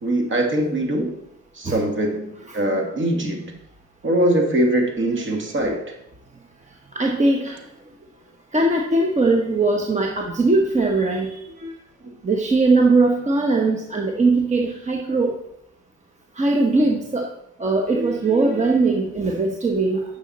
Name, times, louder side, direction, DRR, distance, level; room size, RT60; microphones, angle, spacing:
voice 1, 0.0-1.2 1.5-3.5 4.0-5.9 12.0-12.1, right 1 dB, 40° right, 3 dB, 1.8 m, -22 dB
voice 2, 6.9-7.6 8.5-11.3 11.6-11.7 12.2-15.3 16.4-17.3 17.6-20.0, right 3 dB, 25° right, 1 dB, 1.0 m, -20 dB
9.0 x 6.3 x 4.2 m, 0.82 s
cardioid pair, 90°, 30 cm